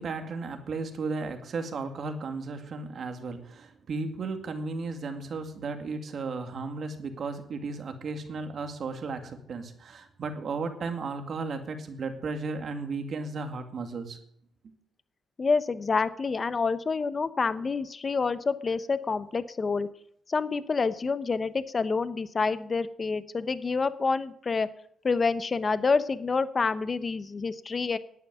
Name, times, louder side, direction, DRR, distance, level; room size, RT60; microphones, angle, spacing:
voice 1, 0.0-14.2 14.6-14.7, right 4 dB, 55° right, 6 dB, 2.1 m, -35 dB
voice 2, 15.4-19.9 20.3-24.7 25.0-28.0, left 4 dB, 35° left, 14 dB, 0.8 m, -27 dB
11.0 x 9.0 x 9.3 m, 0.70 s
cardioid pair, 90°, 0 cm